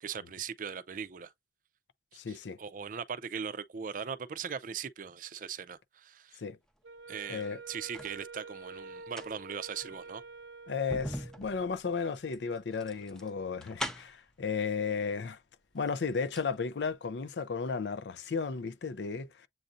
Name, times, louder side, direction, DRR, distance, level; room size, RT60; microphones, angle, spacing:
voice 1, 0.0-1.3 2.1-6.4 7.1-10.2, right 7 dB, 50° right, 0.4 m, -40 dB
voice 2, 2.1-2.6 6.4-6.6 7.3-7.6 10.7-15.4 15.7-19.5, left 5 dB, 80° left, 0.5 m, -34 dB
Wind instrument woodwind instrument, 6.8-11.5, right 4 dB, 85° right, 0.7 m, -48 dB
sound 1, 7.2-8.2 8.9-14.3 15.3-15.4 15.7-16.5 16.8-16.9, equal, 5° left, 0.5 m, -42 dB
7.6 x 2.6 x 2.4 m
head